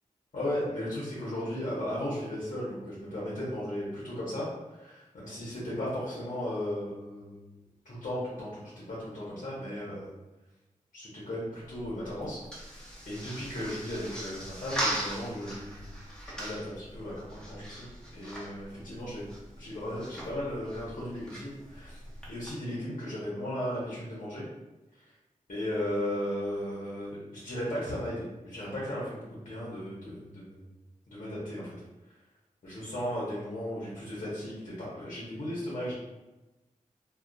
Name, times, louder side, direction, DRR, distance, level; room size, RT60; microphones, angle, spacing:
voice 1, 0.3-7.4 7.8-10.1 10.9-12.8 13.1-15.9 16.2-19.2 19.6-22.0 22.3-24.4 24.9-25.1 25.5-30.7 31.1-31.7 32.6-35.9, left 1 dB, 65° left, -7 dB, 0.9 m, -36 dB
sound 1, 11.6-22.5, right 1 dB, 5° left, 0.9 m, -40 dB
2.4 x 2.3 x 2.2 m, 1.1 s
cardioid pair, 45°, 14 cm